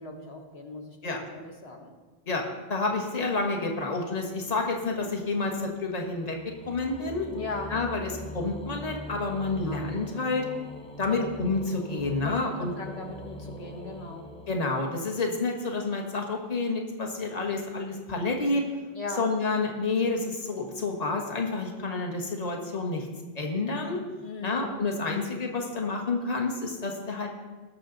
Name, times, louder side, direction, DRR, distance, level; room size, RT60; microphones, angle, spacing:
voice 1, 0.0-1.9 7.3-7.7 9.6-9.9 11.1-11.3 12.1-14.3 18.9-19.3 24.2-24.6, left 3 dB, 75° left, 2 dB, 1.5 m, -38 dB
voice 2, 2.7-6.4 6.7-7.3 7.7-10.5 11.0-12.7 14.5-18.7 19.2-23.1 23.3-24.0 24.4-27.3, left 3 dB, 40° left, 1 dB, 1.5 m, -29 dB
sound 1, 4.4-15.3, left 1 dB, 5° left, 0.7 m, -43 dB
19.0 x 6.8 x 3.9 m, 1.3 s
omnidirectional pair, 1.1 m